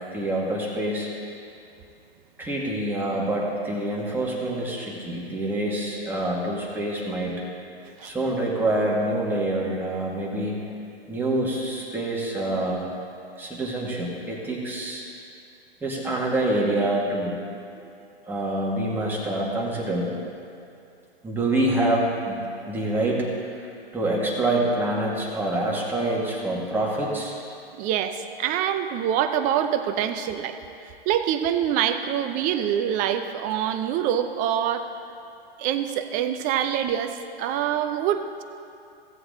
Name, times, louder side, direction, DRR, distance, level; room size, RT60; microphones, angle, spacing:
voice 1, 0.1-1.1 2.4-7.4 8.0-10.7 11.1-12.9 13.4-15.0 15.8-17.4 18.3-20.1 21.2-23.3 23.9-27.3, right 1 dB, 5° right, -4 dB, 2.0 m, -26 dB
voice 2, 27.8-34.9 35.6-38.4, right 10 dB, 25° right, 9 dB, 0.6 m, -25 dB
16.5 x 7.9 x 3.9 m, 2.5 s
hypercardioid pair, 120°, 31 cm